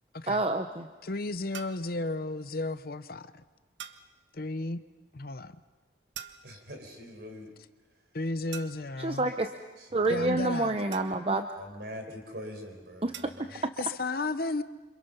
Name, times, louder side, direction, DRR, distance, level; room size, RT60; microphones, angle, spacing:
voice 1, 0.3-0.9 9.0-9.5 9.9-11.5 13.0-13.5, right 2 dB, 30° right, 0.7 m, -28 dB
voice 2, 1.0-3.4 4.3-4.8 5.1-5.6 8.1-9.3 10.1-10.7 13.5-14.6, left 2 dB, 55° left, 0.8 m, -33 dB
sound 1, 1.5-1.9 3.8-4.2 6.1-6.7 8.5-9.0 10.9-11.5 13.1-13.5, right 9 dB, 85° right, 1.0 m, -45 dB
voice 3, 6.4-7.5 9.8-10.4 11.5-13.6, equal, 60° right, 4.7 m, -44 dB
28.0 x 26.5 x 5.7 m
head